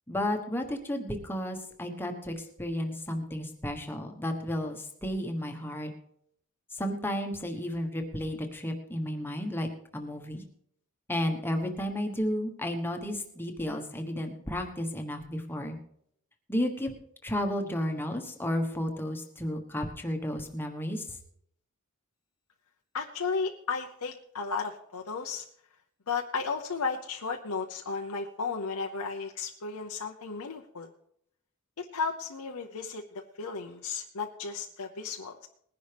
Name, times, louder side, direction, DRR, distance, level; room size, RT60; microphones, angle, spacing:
voice 1, 0.1-5.9 6.7-9.7 9.9-10.4 11.1-15.8 16.5-16.9 17.2-21.0, left 1 dB, 10° left, 4 dB, 1.2 m, -32 dB
voice 2, 22.9-25.4 26.1-30.9 31.8-33.0 33.4-35.5, left 4 dB, 80° left, 2 dB, 0.8 m, -34 dB
20.0 x 10.5 x 3.4 m, 0.70 s
head